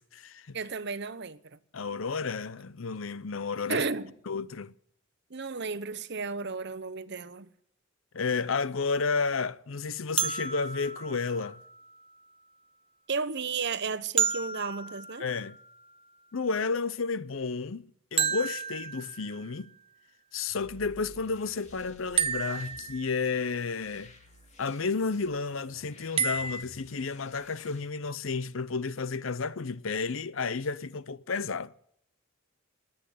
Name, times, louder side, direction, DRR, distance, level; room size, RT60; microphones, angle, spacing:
voice 1, 0.0-0.6 1.7-3.8 4.3-4.7 8.1-11.6 15.2-15.6 16.3-19.7 20.3-24.1 24.6-31.7, left 4 dB, 70° left, 0.7 m, -32 dB
voice 2, 0.5-1.6 3.7-4.1 5.3-7.5 13.1-15.3, right 4 dB, 55° right, 0.9 m, -33 dB
sound 1, 10.2-12.1 14.2-16.0 18.2-19.6 22.2-23.5 26.2-26.6, right 7 dB, 25° right, 0.8 m, -32 dB
sound 2, 20.5-27.9, left 1 dB, 35° left, 2.7 m, -54 dB
20.0 x 9.0 x 7.9 m
head